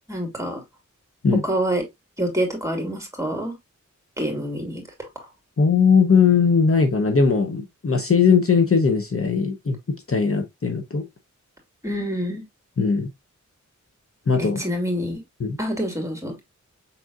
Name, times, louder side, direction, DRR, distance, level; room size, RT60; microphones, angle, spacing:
voice 1, 0.1-0.6 1.4-1.8 2.2-3.5 4.2-5.1 11.8-12.4 14.4-15.2 15.6-16.3, equal, 10° right, 2.3 m, -26 dB
voice 2, 5.6-9.8 10.1-11.0 12.8-13.1 14.3-14.7 15.4-15.6, left 5 dB, 45° left, 0.8 m, -19 dB
5.7 x 3.7 x 2.3 m
wide cardioid pair, 50°, 30 cm